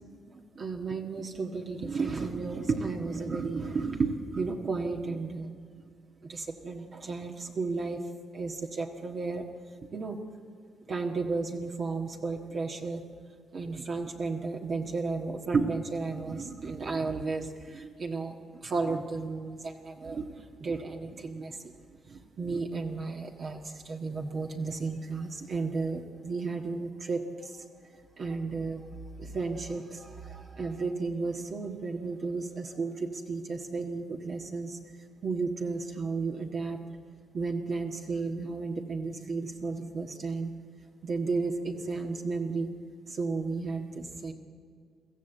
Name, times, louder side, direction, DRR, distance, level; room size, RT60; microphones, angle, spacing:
voice 1, 0.3-5.5 6.2-8.0 8.3-9.4 9.8-10.2 10.9-13.0 13.5-20.3 20.6-21.6 22.1-27.6 28.2-28.9 29.2-34.8 35.2-36.8 37.3-40.5 41.0-42.7 43.1-44.3, right 4 dB, 45° right, 2 dB, 1.6 m, -33 dB
23.0 x 14.5 x 8.1 m, 2.1 s
cardioid pair, 90°, 0 cm